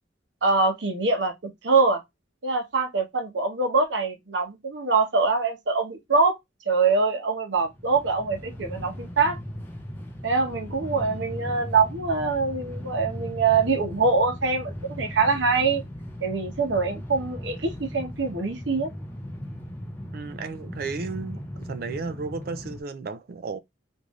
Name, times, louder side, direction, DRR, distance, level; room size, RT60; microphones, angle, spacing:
voice 1, 0.4-2.0 2.4-6.4 6.7-9.4 10.2-15.8 16.2-18.9, right 4 dB, 70° right, 0.9 m, -24 dB
Train, 7.6-22.8, equal, 10° left, 0.6 m, -37 dB
voice 2, 20.1-23.6, right 4 dB, 55° right, 0.3 m, -34 dB
3.5 x 2.6 x 3.0 m
head